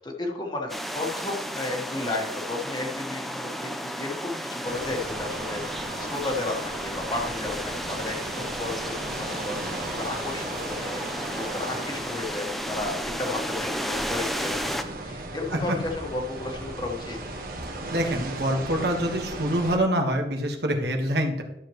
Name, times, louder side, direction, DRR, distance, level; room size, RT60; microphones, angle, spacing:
voice 1, 0.0-14.8 15.0-17.2, left 2 dB, 25° left, 0 dB, 1.5 m, -33 dB
sound 1, 0.7-14.8, equal, ahead, 0.5 m, -33 dB
sound 2, 4.6-19.8, right 2 dB, 50° right, 1.4 m, -37 dB
voice 2, 17.9-21.4, right 1 dB, 70° right, 3 dB, 1.6 m, -25 dB
12.0 x 7.0 x 3.1 m, 0.90 s
head